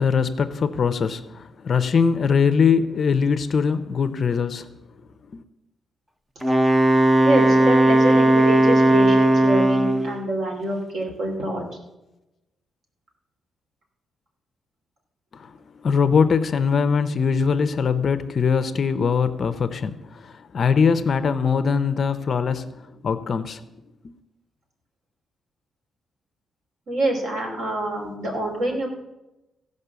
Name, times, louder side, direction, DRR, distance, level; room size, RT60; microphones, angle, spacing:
voice 1, 0.0-4.6 5.3-5.4 15.3-15.5 15.8-23.6 24.0-24.1, left 6 dB, 40° left, 0.5 m, -22 dB
Wind instrument woodwind instrument, 6.4-10.2, right 1 dB, 10° right, 0.6 m, -17 dB
voice 2, 7.2-11.8 26.9-28.9, right 1 dB, 55° right, 2.9 m, -26 dB
15.5 x 5.4 x 6.8 m
wide cardioid pair, 170°, 0 cm